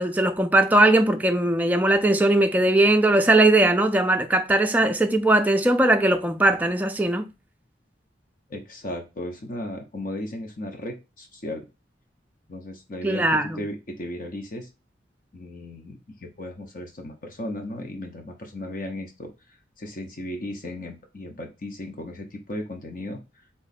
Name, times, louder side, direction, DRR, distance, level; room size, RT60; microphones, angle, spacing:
voice 1, 0.0-7.3 13.0-13.6, right 1 dB, 10° right, 0.4 m, -19 dB
voice 2, 8.5-11.7 12.5-14.7 15.3-23.4, left 1 dB, 50° left, 0.7 m, -36 dB
3.6 x 3.1 x 4.1 m
head